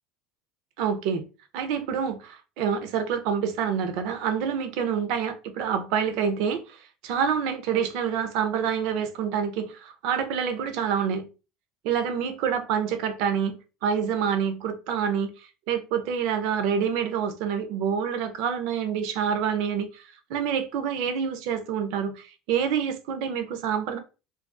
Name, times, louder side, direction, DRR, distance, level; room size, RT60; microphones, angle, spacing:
voice 1, 0.8-1.2 1.5-11.3 11.8-15.3 15.7-20.0 20.3-24.0, right 7 dB, 50° right, 0.4 m, -27 dB
2.3 x 2.2 x 2.4 m
cardioid pair, 180°, 0 cm